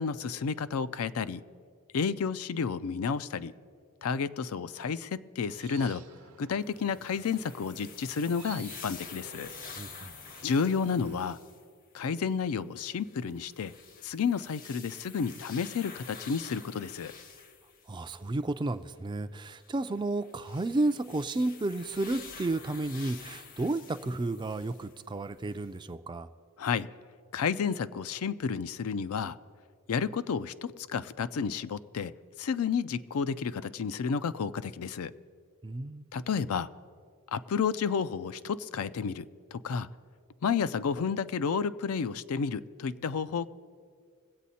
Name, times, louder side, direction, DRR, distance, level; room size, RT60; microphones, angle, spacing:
voice 1, 0.0-1.4 1.9-3.5 4.0-6.0 6.4-9.5 10.4-11.4 11.9-13.7 14.0-17.1 26.6-26.9 27.3-29.4 29.9-32.1 32.4-35.1 36.1-36.7 37.3-39.9 40.4-43.5, left 6 dB, 70° left, 14 dB, 0.4 m, -31 dB
sound 1, 5.4-11.3, right 5 dB, 75° right, 0.8 m, -53 dB
sound 2, 6.6-11.6 12.1-12.3 13.0-18.4 19.5-25.0 25.5-25.6, left 6 dB, 40° left, 0.7 m, -49 dB
voice 2, 9.8-10.1 17.9-26.3 35.6-36.1, right 2 dB, 20° right, 10 dB, 0.4 m, -32 dB
21.5 x 8.3 x 4.2 m, 2.1 s
head